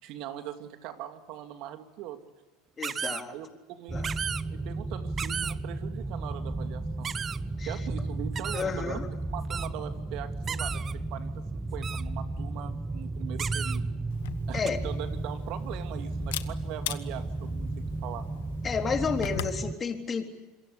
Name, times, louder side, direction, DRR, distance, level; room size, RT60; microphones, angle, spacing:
voice 1, 0.0-2.2 3.3-4.1 4.5-7.1 7.7-10.8 11.1-13.9 14.5-18.2, right 11 dB, 60° right, 7 dB, 2.6 m, -41 dB
voice 2, 2.8-3.3 3.9-4.1 7.6-7.7 8.5-9.1 14.5-14.8 18.6-20.3, left 5 dB, 30° left, 5 dB, 3.7 m, -31 dB
sound 1, 2.8-3.2 4.0-4.4 5.2-5.5 7.0-7.4 8.4-8.6 9.5-9.7 10.4-10.9 11.8-12.0 13.4-13.8 14.7-14.8, right 7 dB, 35° right, 0.9 m, -34 dB
sound 2, 3.9-19.7, right 2 dB, 15° right, 1.3 m, -34 dB
Camera, 14.1-19.6, left 15 dB, 75° left, 1.3 m, -41 dB
27.5 x 22.5 x 8.5 m, 1.2 s
hypercardioid pair, 85°, 0 cm